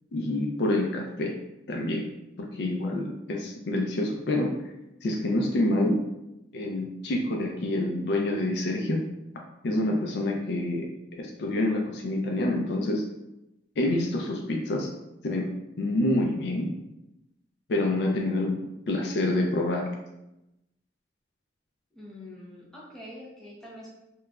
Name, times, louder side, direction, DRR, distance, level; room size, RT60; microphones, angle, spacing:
voice 1, 0.1-1.4 1.7-2.1 2.4-4.5 5.0-6.0 6.5-9.0 9.6-10.9 11.2-13.0 13.8-14.9 15.2-15.5 15.8-16.7 17.7-18.6 18.9-19.9, left 1 dB, 60° left, 1 dB, 0.4 m, -27 dB
voice 2, 21.9-23.9, left 1 dB, 5° left, -6 dB, 0.5 m, -45 dB
2.9 x 2.2 x 2.3 m, 0.91 s
head